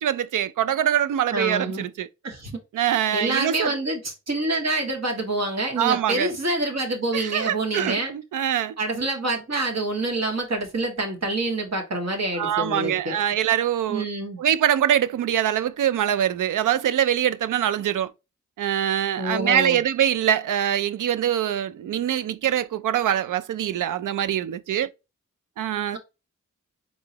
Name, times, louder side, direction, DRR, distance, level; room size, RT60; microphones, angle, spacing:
voice 1, 0.0-2.1 2.7-3.7 5.8-6.3 7.1-8.7 12.3-14.1 14.4-18.1 18.6-24.9 25.6-26.0, right 10 dB, 85° right, 0.5 m, -23 dB
voice 2, 1.3-1.8 2.2-2.6 3.1-8.1 8.8-13.2 13.9-14.4 19.2-19.8 25.9-26.0, right 2 dB, 60° right, 1.9 m, -27 dB
3.8 x 3.8 x 2.9 m
cardioid pair, 60°, 30 cm